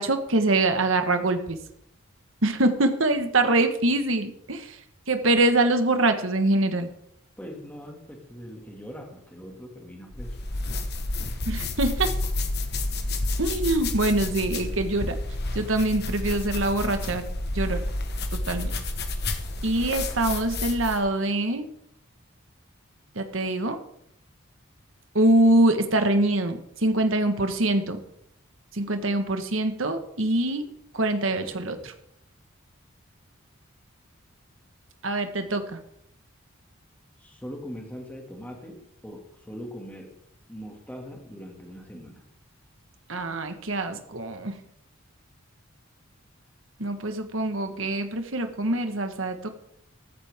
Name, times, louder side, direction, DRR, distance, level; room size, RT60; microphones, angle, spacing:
voice 1, 0.0-1.6 2.4-4.8 5.1-6.9 11.5-12.1 13.4-15.2 15.5-17.2 17.5-17.8 18.3-18.8 19.6-21.7 23.1-23.8 25.1-28.0 28.7-30.7 30.9-31.9 35.0-35.8 43.1-44.5 46.8-49.5, right 2 dB, 70° right, 7 dB, 1.5 m, -24 dB
voice 2, 7.4-10.4 31.3-31.9 37.2-40.1 40.5-42.2, equal, 10° left, 0 dB, 2.3 m, -41 dB
sound 1, 10.1-21.1, left 2 dB, 50° left, 1.4 m, -30 dB
14.5 x 14.0 x 3.7 m, 0.74 s
head